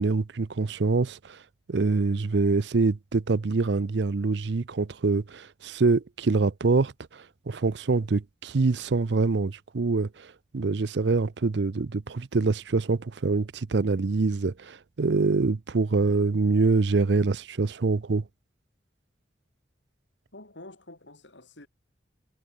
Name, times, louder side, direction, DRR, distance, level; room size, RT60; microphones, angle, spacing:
voice 1, 0.0-1.4 1.7-18.2, right 3 dB, 65° right, 0.6 m, -25 dB
voice 2, 20.3-21.7, left 2 dB, 70° left, 4.4 m, -47 dB
head